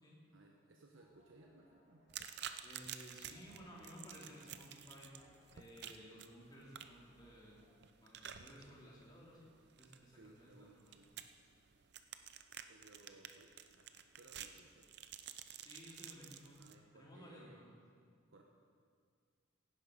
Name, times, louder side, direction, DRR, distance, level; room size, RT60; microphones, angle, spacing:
voice 1, 0.2-2.0 10.1-11.1 12.7-15.0 16.6-17.6 18.3-18.4, right 2 dB, 80° right, 1 dB, 1.1 m, -62 dB
sound 1, 0.9-7.7, equal, 40° right, 3.8 m, -70 dB
sound 2, 2.1-16.7, right 9 dB, 55° right, 0.6 m, -52 dB
voice 2, 2.6-5.1 5.5-7.6 8.0-9.5 9.8-11.0 15.6-16.6 16.9-17.8, equal, 20° left, -5 dB, 3.1 m, -56 dB
16.5 x 10.5 x 5.3 m, 2.1 s
head